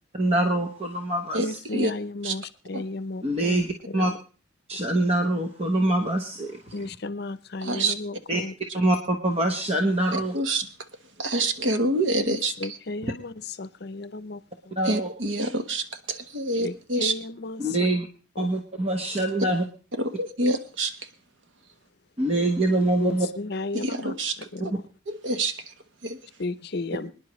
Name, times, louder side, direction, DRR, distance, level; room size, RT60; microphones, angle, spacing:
voice 1, 0.1-1.6 3.2-4.1 4.7-6.7 8.3-8.4 8.7-10.3 14.8-15.1 17.6-18.1 18.4-19.6 22.2-23.3, right 1 dB, 30° right, 1.1 m, -24 dB
voice 2, 1.4-4.2 6.7-8.5 12.2-14.8 16.6-17.9 18.4-18.5 23.0-24.1 24.5-24.8 26.4-27.1, left 2 dB, 55° left, 0.7 m, -34 dB
voice 3, 7.6-7.9 10.3-10.7 11.2-12.5 14.8-17.1 20.0-20.9 23.7-24.4 25.1-25.5 26.0-26.2, right 2 dB, 75° right, 1.2 m, -26 dB
25.0 x 10.0 x 3.1 m
head